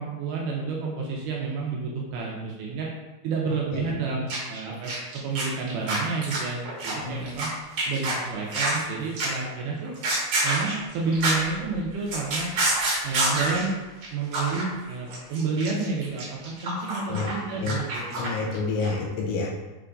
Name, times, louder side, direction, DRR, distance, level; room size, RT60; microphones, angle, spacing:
voice 1, 0.0-2.9 3.2-4.9 5.2-6.6 6.8-7.5 7.9-9.9 10.4-12.5 13.0-13.7 14.1-18.1, right 4 dB, 80° right, -2 dB, 1.9 m, -30 dB
sound 1, 4.3-4.6 4.8-7.5 7.8-8.8 9.2-9.5 9.8-11.5 11.8-13.7 14.0-14.1 14.3-14.6 14.9-18.6 18.8-18.9, right 2 dB, 60° right, 2.0 m, -27 dB
voice 2, 18.2-19.5, left 4 dB, 85° left, -1 dB, 2.4 m, -29 dB
5.2 x 3.4 x 2.5 m, 1.1 s
omnidirectional pair, 4.1 m